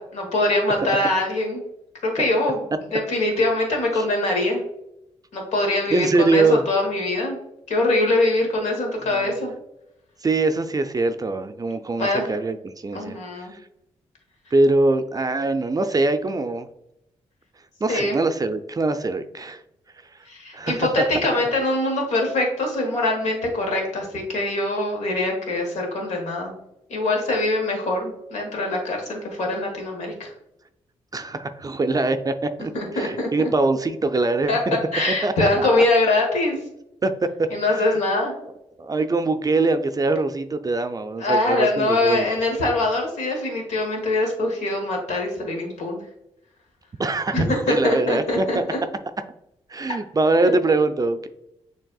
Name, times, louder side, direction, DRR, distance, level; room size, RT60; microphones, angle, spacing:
voice 1, 0.0-1.6 2.0-2.6 2.9-4.6 5.3-7.4 7.7-9.5 12.0-12.3 12.9-13.5 17.9-18.2 20.3-26.5 26.9-30.3 32.7-33.5 34.5-34.6 34.9-36.6 37.5-38.3 41.2-46.0 47.3-48.8 50.4-50.5, left 2 dB, 75° left, 2 dB, 1.3 m, -23 dB
voice 2, 5.9-6.6 9.1-9.3 10.2-13.2 14.5-16.7 17.8-19.6 20.5-20.9 31.1-32.3 32.6-34.8 35.2-35.8 37.0-37.1 37.7-38.0 38.8-42.3 47.0-48.6 49.7-51.3, right 3 dB, 30° right, 9 dB, 0.4 m, -23 dB
6.4 x 3.3 x 2.3 m, 0.84 s
supercardioid pair, 45°, 12 cm